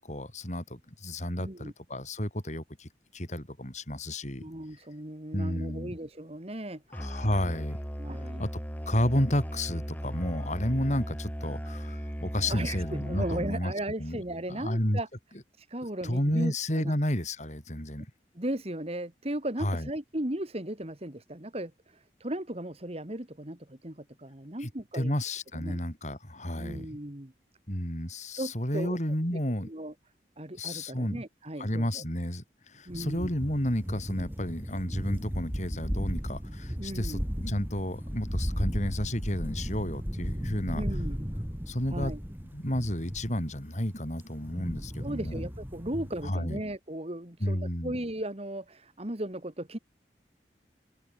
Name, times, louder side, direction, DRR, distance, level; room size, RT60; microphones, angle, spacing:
voice 1, 0.0-4.4 5.3-5.9 6.9-7.8 8.4-8.5 8.9-13.7 14.0-14.2 14.5-15.0 16.0-18.1 19.6-19.9 24.6-26.9 27.7-29.7 30.6-31.2 31.6-40.8 41.7-42.1 42.5-45.4 46.2-46.6 47.4-48.0, left 1 dB, 40° left, 7.4 m, -31 dB
voice 2, 1.4-1.7 4.4-6.8 8.0-8.4 12.4-15.1 15.7-16.9 18.3-21.7 22.2-25.1 25.5-25.8 26.5-27.3 28.4-29.0 29.3-29.9 30.4-32.0 32.9-33.3 36.8-37.2 40.3-40.4 40.7-41.3 41.9-42.2 45.0-49.8, right 1 dB, 35° right, 2.5 m, -36 dB
Musical instrument, 6.9-13.7, equal, 10° left, 2.5 m, -37 dB
sound 1, 32.9-46.3, equal, 10° right, 6.6 m, -35 dB
head